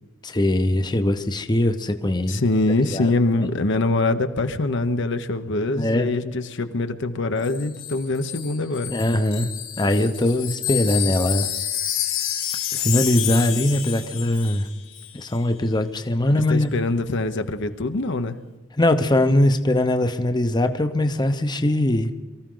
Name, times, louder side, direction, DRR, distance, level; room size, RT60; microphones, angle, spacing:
voice 1, 0.2-2.4 2.8-3.1 3.4-3.5 5.7-6.1 8.9-9.5 9.8-11.5 12.7-14.7 15.1-16.7 18.8-22.1, left 1 dB, 20° left, 8 dB, 0.8 m, -21 dB
voice 2, 2.3-8.9 16.5-18.4, left 2 dB, 65° left, 8 dB, 0.9 m, -24 dB
Wind chime, 7.4-14.7 14.9-15.1, left 11 dB, 80° left, 4.0 m, -29 dB
23.5 x 14.0 x 3.9 m, 1.2 s
head